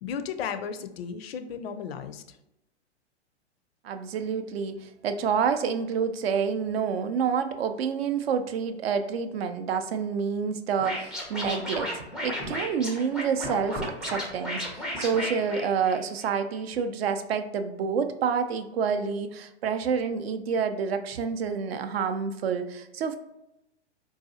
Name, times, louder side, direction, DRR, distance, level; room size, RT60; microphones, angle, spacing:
voice 1, 0.0-2.4, left 7 dB, 60° left, 9 dB, 0.4 m, -35 dB
voice 2, 3.8-23.2, right 6 dB, 60° right, 9 dB, 0.5 m, -28 dB
Scratching (performance technique), 10.8-16.3, equal, ahead, 0.4 m, -34 dB
3.9 x 2.4 x 2.6 m, 0.87 s
figure-of-eight pair, 110°, 34 cm